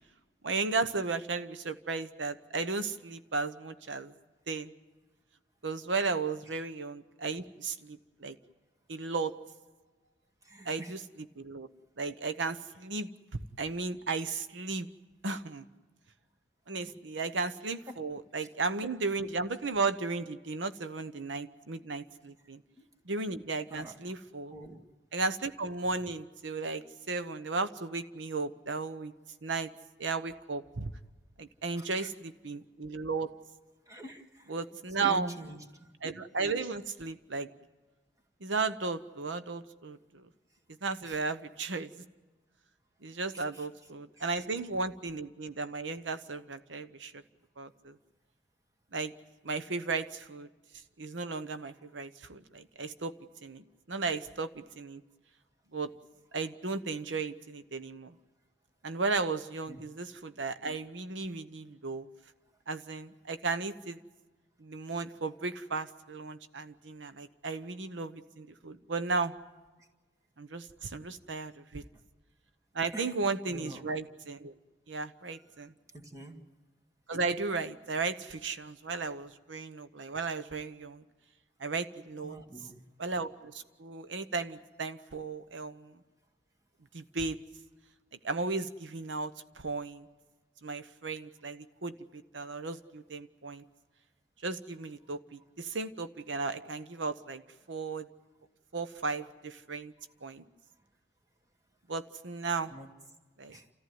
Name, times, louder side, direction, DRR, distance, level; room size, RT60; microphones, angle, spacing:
voice 1, 0.4-4.1 4.5-4.7 5.6-8.3 8.9-9.3 10.7-11.0 11.4-11.7 12.0-13.1 13.6-14.9 15.2-15.6 16.7-22.6 23.1-24.5 25.1-29.1 29.4-29.7 30.0-30.9 31.4-33.3 34.5-35.4 36.0-37.5 38.4-40.3 40.8-42.1 43.0-47.2 47.6-47.9 48.9-49.1 49.4-50.5 51.0-53.2 53.4-55.0 55.7-55.9 56.3-58.1 58.8-62.1 62.7-64.0 64.6-69.3 70.4-71.8 72.7-74.5 74.9-75.7 77.1-81.0 81.6-82.4 83.0-85.9 86.9-87.4 88.2-90.1 90.6-93.6 94.4-97.4 97.7-98.1 98.7-99.9 100.2-100.4 101.9-102.7 103.4-103.6, right 4 dB, 85° right, 11 dB, 1.0 m, -35 dB
voice 2, 10.4-11.0 17.9-18.0 18.4-18.5 22.8-22.9 23.7-24.2 24.5-24.8 31.7-32.1 33.9-34.6 35.0-35.9 41.0-41.2 43.3-43.7 44.2-44.5 59.7-59.8 69.8-69.9 72.9-73.2 73.5-73.8 75.9-76.4 82.2-82.8 95.0-95.1 102.7-102.9 103.5-103.7, right 1 dB, 20° right, 2 dB, 2.1 m, -46 dB
29.0 x 14.5 x 9.4 m, 1.2 s
head